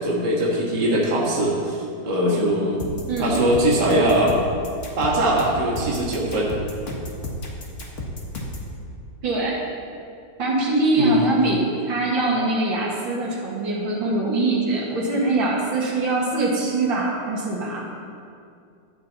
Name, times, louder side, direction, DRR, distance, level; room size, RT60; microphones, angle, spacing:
voice 1, 0.0-2.8 3.2-4.4 5.0-6.5 11.0-11.2, right 1 dB, 65° right, -4 dB, 2.4 m, -21 dB
sound 1, 2.8-8.7, left 1 dB, 45° left, 1.6 m, -32 dB
voice 2, 9.2-9.6 10.4-17.9, right 2 dB, 85° right, -4 dB, 2.4 m, -23 dB
13.0 x 9.2 x 4.0 m, 2.4 s
omnidirectional pair, 2.0 m